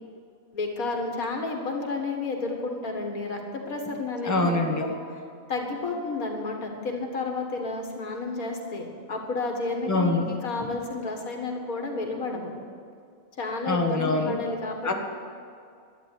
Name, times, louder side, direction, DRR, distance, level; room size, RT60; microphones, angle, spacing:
voice 1, 0.5-5.0 5.5-12.5 13.4-14.9, left 3 dB, 85° left, 3 dB, 2.3 m, -31 dB
voice 2, 4.3-4.8 9.9-10.2 13.7-14.4 14.8-14.9, left 2 dB, 15° left, 2 dB, 1.4 m, -24 dB
12.0 x 10.0 x 9.9 m, 2.3 s
omnidirectional pair, 1.5 m